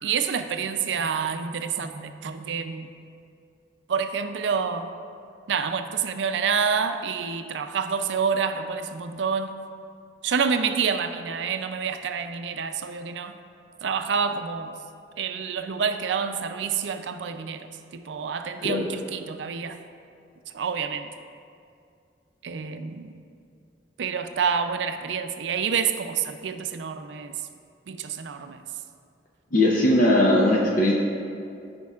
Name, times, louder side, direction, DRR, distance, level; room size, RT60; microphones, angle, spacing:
voice 1, 0.0-2.9 3.9-4.9 5.5-9.6 10.2-13.4 13.8-14.8 15.2-19.8 20.5-21.1 22.4-23.1 24.0-27.3 27.9-28.6, right 6 dB, 75° right, 8 dB, 0.4 m, -28 dB
voice 2, 29.5-30.9, left 1 dB, 50° left, -2 dB, 0.7 m, -19 dB
13.5 x 5.2 x 2.4 m, 2.4 s
head